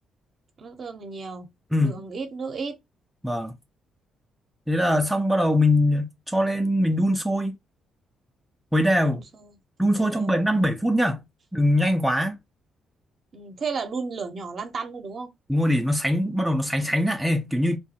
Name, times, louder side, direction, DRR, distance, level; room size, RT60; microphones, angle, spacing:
voice 1, 0.6-1.5 1.8-2.8 9.0-9.6 10.0-10.4 13.3-15.3, right 4 dB, 50° right, 0.6 m, -34 dB
voice 2, 1.7-2.0 3.2-3.5 4.7-7.5 8.7-9.2 9.8-11.2 11.5-12.4 15.5-17.8, left 1 dB, 5° right, 0.4 m, -22 dB
2.4 x 2.2 x 2.8 m
cardioid pair, 90°, 0 cm